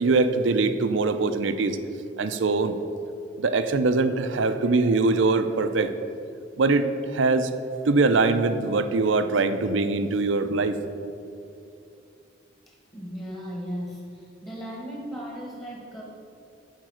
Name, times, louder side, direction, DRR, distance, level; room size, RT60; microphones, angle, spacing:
voice 1, 0.0-1.8 2.2-2.8 3.4-5.9 6.6-7.5 7.9-10.8, right 3 dB, 80° right, 10 dB, 0.5 m, -22 dB
voice 2, 12.9-16.0, equal, 20° left, -3 dB, 1.2 m, -36 dB
9.0 x 4.7 x 6.2 m, 2.6 s
head